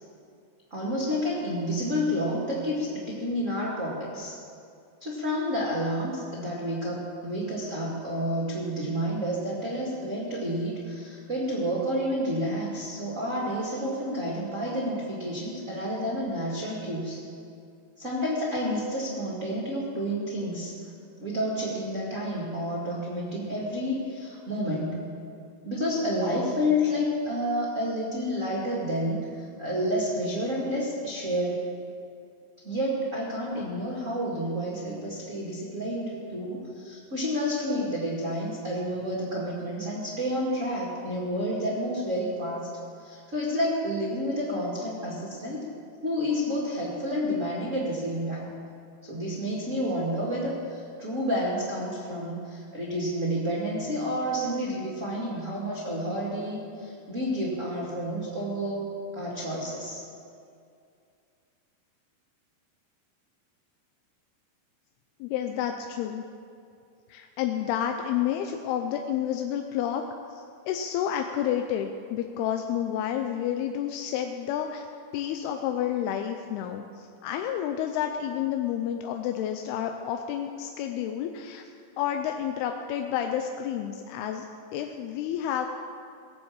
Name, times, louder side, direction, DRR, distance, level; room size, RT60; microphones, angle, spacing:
voice 1, 0.7-4.4 5.0-17.2 18.0-20.7 21.2-25.0 25.6-31.6 32.6-42.7 43.0-45.7 46.0-48.5 49.0-58.9 59.1-60.0, equal, 30° right, -5 dB, 1.7 m, -30 dB
voice 2, 65.2-66.2 67.1-70.0 70.3-74.9 75.1-85.7, left 10 dB, 90° left, 5 dB, 2.6 m, -30 dB
18.0 x 7.2 x 7.3 m, 2.4 s
omnidirectional pair, 4.4 m